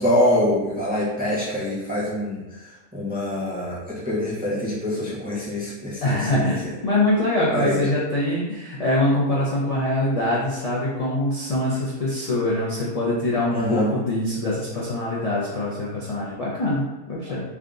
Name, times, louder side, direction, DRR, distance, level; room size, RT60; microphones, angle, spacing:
voice 1, 0.0-6.8 7.5-7.8 13.5-13.9, left 1 dB, 10° right, -7 dB, 0.5 m, -25 dB
voice 2, 6.0-17.4, left 1 dB, 50° left, -7 dB, 0.4 m, -24 dB
3.5 x 2.4 x 3.7 m, 1.1 s
omnidirectional pair, 1.5 m